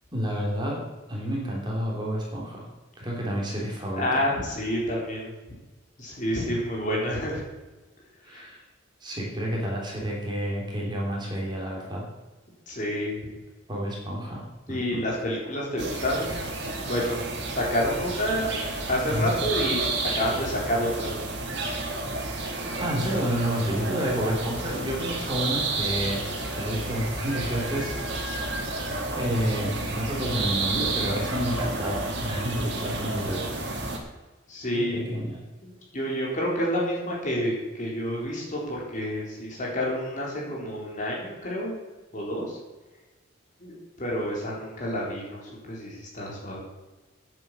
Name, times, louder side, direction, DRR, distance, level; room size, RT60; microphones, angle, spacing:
voice 1, 0.1-0.8 1.1-2.7 3.0-4.2 8.2-8.6 9.0-12.1 13.7-15.0 18.4-18.6 19.1-19.3 22.8-26.2 26.5-27.9 29.1-33.6 34.7-35.4, equal, 20° right, -3 dB, 3.3 m, -30 dB
voice 2, 4.0-5.3 6.0-7.4 8.3-8.4 12.7-13.2 14.7-16.3 16.7-18.5 18.9-21.3 34.5-35.0 35.6-41.8 42.1-42.6 43.6-45.4 45.7-46.6, equal, 40° left, -3 dB, 3.7 m, -29 dB
sound 1, 15.8-34.0, right 2 dB, 55° right, 2.4 m, -31 dB
9.8 x 8.8 x 7.6 m, 1.2 s
head